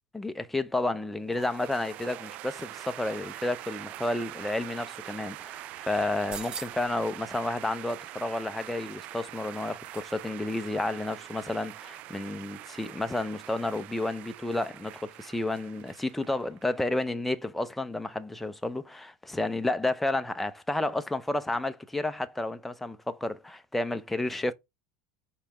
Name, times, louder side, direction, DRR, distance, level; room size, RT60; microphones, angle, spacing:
voice 1, 0.1-24.5, left 2 dB, 5° left, 0.7 m, -31 dB
sound 1, 1.3-16.8, right 16 dB, 50° right, 0.4 m, -44 dB
sound 2, 6.3-7.0 8.5-10.2 10.5-10.6, right 6 dB, 30° right, 1.3 m, -44 dB
5.5 x 4.2 x 5.1 m
supercardioid pair, 120°, 3 cm